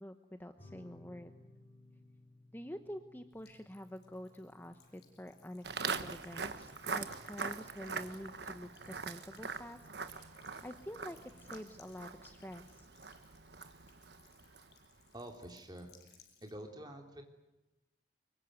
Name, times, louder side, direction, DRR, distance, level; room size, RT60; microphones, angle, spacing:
voice 1, 0.0-1.3 2.5-9.8 10.1-12.9, equal, 10° left, 7 dB, 1.0 m, -48 dB
sound 1, 0.6-11.6, left 1 dB, 35° left, 6.9 m, -62 dB
Buzz / Water tap faucet / Trickle dribble, 3.3-16.5, left 6 dB, 65° left, 7.1 m, -66 dB
Walk footsteps, 5.6-14.9, right 5 dB, 65° right, 1.4 m, -43 dB
voice 2, 15.1-15.9 16.4-17.2, right 1 dB, 25° right, 3 dB, 3.6 m, -47 dB
25.0 x 23.0 x 9.5 m, 0.97 s
head